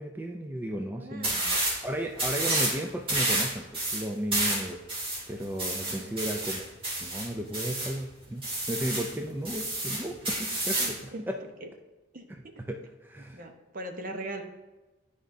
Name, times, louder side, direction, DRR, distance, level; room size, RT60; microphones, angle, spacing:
voice 1, 0.0-1.4 1.8-4.8 5.3-6.7 7.0-11.4 12.3-12.4 12.7-13.4, right 1 dB, 10° right, 3 dB, 0.4 m, -34 dB
voice 2, 1.0-1.5 5.8-6.2 10.8-11.2 11.6-11.7 12.1-12.5 13.3-14.4, right 1 dB, 50° right, 4 dB, 0.9 m, -40 dB
sound 1, 1.2-1.8 2.1-2.8 3.1-7.9 8.4-9.1 9.4-11.0, right 1 dB, 30° right, 2.6 m, -29 dB
11.5 x 4.9 x 2.7 m, 1.1 s
head